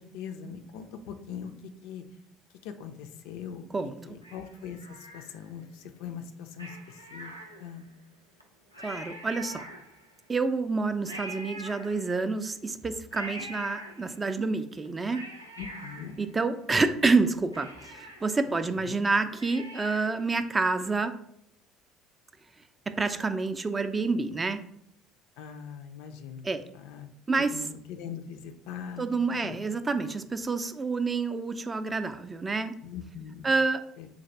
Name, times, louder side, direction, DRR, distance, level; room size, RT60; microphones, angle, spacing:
voice 1, 0.0-1.5 1.8-2.0 2.6-3.7 4.0-7.3 7.6-7.9 15.6-16.2 18.5-18.9 25.4-26.5 26.7-29.1 29.4-29.6 32.8-33.5 34.0-34.1, left 7 dB, 60° left, 8 dB, 0.3 m, -41 dB
voice 2, 3.7-4.2 8.8-9.6 10.3-15.2 16.2-21.1 23.0-24.6 26.4-26.6 27.3-27.6 29.0-32.8 33.4-33.8, right 3 dB, 25° right, 10 dB, 0.3 m, -28 dB
Cat, 4.2-5.7 6.5-7.9 8.4-8.5 8.7-10.2 11.1-12.4 13.1-14.4 14.8-16.9 17.2-17.3 17.5-20.3 20.7-20.8, right 1 dB, 90° right, 0.4 m, -44 dB
4.0 x 2.5 x 4.6 m, 0.73 s
figure-of-eight pair, 60°, 0 cm